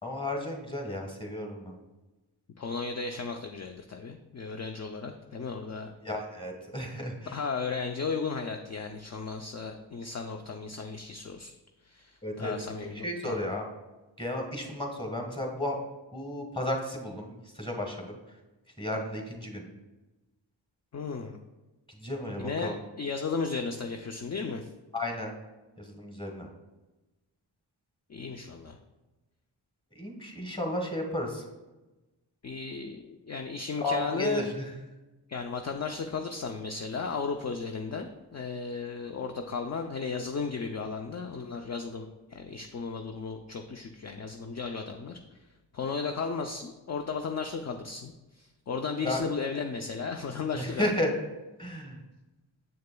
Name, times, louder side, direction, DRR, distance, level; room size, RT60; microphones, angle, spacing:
voice 1, 0.0-1.7 6.0-7.4 12.2-12.5 12.9-13.7 14.2-15.8 16.1-18.1 18.8-19.7 22.0-22.8 24.9-25.3 25.8-26.5 29.9-31.4 33.8-34.7 49.0-49.2 50.5-51.1 51.6-52.0, left 1 dB, 10° left, 1 dB, 1.4 m, -33 dB
voice 2, 2.6-5.9 7.3-11.5 11.8-13.5 20.9-21.4 22.4-24.7 28.1-28.8 32.4-34.4 35.3-45.2 45.7-50.9, left 5 dB, 35° left, 5 dB, 0.5 m, -35 dB
6.9 x 6.4 x 2.2 m, 1.1 s
cardioid pair, 40°, 46 cm